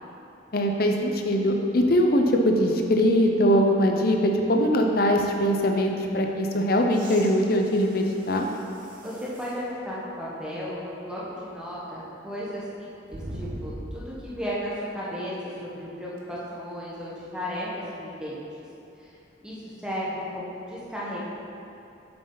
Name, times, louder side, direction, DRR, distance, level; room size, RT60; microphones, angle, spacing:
voice 1, 0.5-8.5, equal, 50° left, 2 dB, 0.7 m, -22 dB
sound 1, 6.9-9.6 10.3-10.4 13.1-14.3 16.2-16.3, right 1 dB, 45° right, 0.9 m, -41 dB
voice 2, 9.0-15.3 15.6-17.7 18.0-18.4 19.0-19.1 19.4-21.3, equal, 5° right, -8 dB, 1.2 m, -34 dB
8.2 x 6.8 x 3.9 m, 2.7 s
head